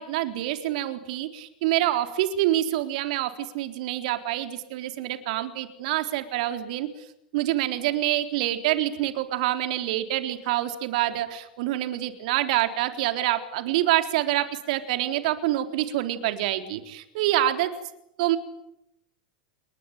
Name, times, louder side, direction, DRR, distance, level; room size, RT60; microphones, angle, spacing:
voice 1, 0.0-6.9 7.3-17.7 18.2-18.4, right 14 dB, 60° right, 8 dB, 3.9 m, -26 dB
29.5 x 21.5 x 9.2 m, 0.80 s
figure-of-eight pair, 90°, 5 cm